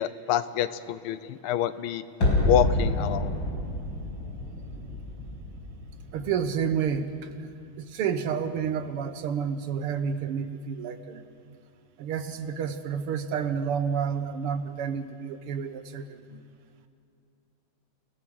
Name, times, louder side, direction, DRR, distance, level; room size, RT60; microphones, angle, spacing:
voice 1, 0.0-2.0 2.5-3.4, left 10 dB, 80° left, 14 dB, 1.6 m, -27 dB
sound 1, 2.2-7.1 7.4-7.5, left 1 dB, 60° left, 6.0 m, -29 dB
voice 2, 6.1-7.5 7.8-11.2 12.0-16.4, right 7 dB, 85° right, 9 dB, 2.0 m, -30 dB
28.5 x 17.5 x 6.3 m, 2.4 s
omnidirectional pair, 2.4 m